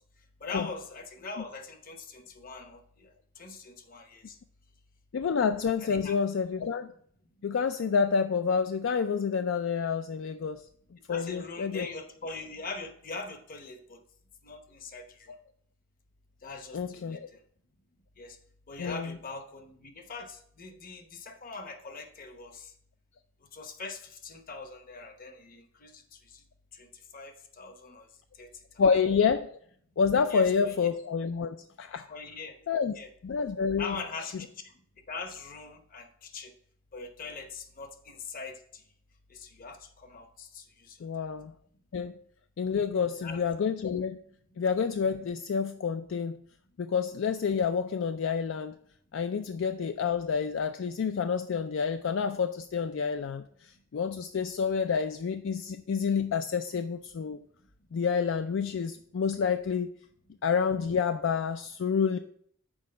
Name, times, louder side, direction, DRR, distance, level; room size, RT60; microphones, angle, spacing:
voice 1, 0.4-4.4 5.8-6.2 11.1-14.0 14.4-15.3 16.4-17.4 18.2-18.4 18.7-22.7 23.5-26.4 26.7-28.1 28.4-28.8 30.3-30.8 32.1-33.1 33.8-34.7 35.1-36.5 36.9-38.8 39.3-41.3 43.2-43.4, left 4 dB, 45° left, 7 dB, 0.9 m, -42 dB
voice 2, 5.1-6.9 7.4-10.6 11.1-11.9 15.3-15.4 16.7-17.3 18.8-19.1 28.8-29.5 30.0-32.1 32.7-32.9 33.2-34.0 41.0-41.5 41.9-42.1 42.6-44.2 44.6-46.4 46.8-48.8 49.1-57.4 57.9-59.9 60.4-62.2, left 6 dB, 65° left, 8 dB, 0.4 m, -28 dB
6.3 x 4.6 x 6.4 m, 0.62 s
head